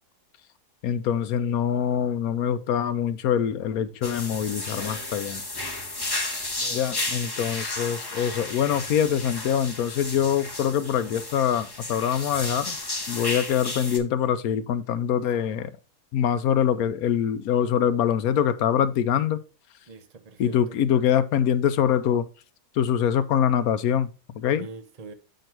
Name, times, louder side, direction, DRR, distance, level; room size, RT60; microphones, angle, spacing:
voice 1, 0.8-5.4 6.7-12.8 13.1-15.7 16.1-19.4 20.4-22.3 22.8-24.7, left 9 dB, 75° left, 1.0 m, -24 dB
sound 1, 4.0-14.0, left 2 dB, 20° left, 0.7 m, -33 dB
voice 2, 6.6-7.1 19.9-20.8 24.6-25.1, right 4 dB, 40° right, 0.5 m, -44 dB
7.6 x 4.6 x 4.5 m
omnidirectional pair, 1.7 m